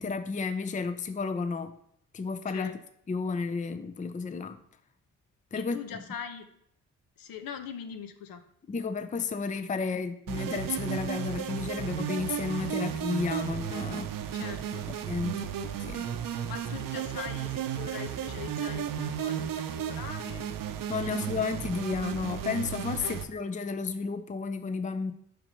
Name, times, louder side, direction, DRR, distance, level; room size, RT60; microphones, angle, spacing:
voice 1, 0.0-1.7 2.1-2.7 3.1-4.6 5.5-6.0 8.7-14.1 15.1-15.3 15.9-16.1 20.9-25.1, left 4 dB, 20° left, 10 dB, 0.5 m, -32 dB
voice 2, 5.5-6.5 7.2-8.4 14.3-14.9 16.3-20.5 21.0-21.3 23.0-23.2, left 7 dB, 70° left, 8 dB, 0.8 m, -42 dB
sound 1, 10.3-23.2, right 9 dB, 60° right, 0.7 m, -34 dB
5.2 x 4.5 x 5.2 m, 0.70 s
supercardioid pair, 55°, 37 cm